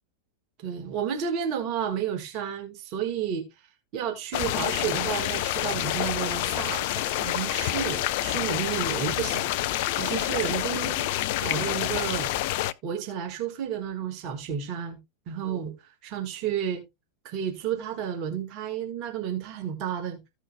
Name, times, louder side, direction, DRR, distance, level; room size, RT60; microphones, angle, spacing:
voice 1, 0.6-3.4 3.9-11.1 11.4-12.3 12.8-15.0 15.3-16.8 17.2-20.2, right 8 dB, 40° right, 1.6 m, -31 dB
sound 1, 4.3-12.7, left 15 dB, 50° left, 0.4 m, -28 dB
15.0 x 5.5 x 2.2 m
figure-of-eight pair, 90°, 0 cm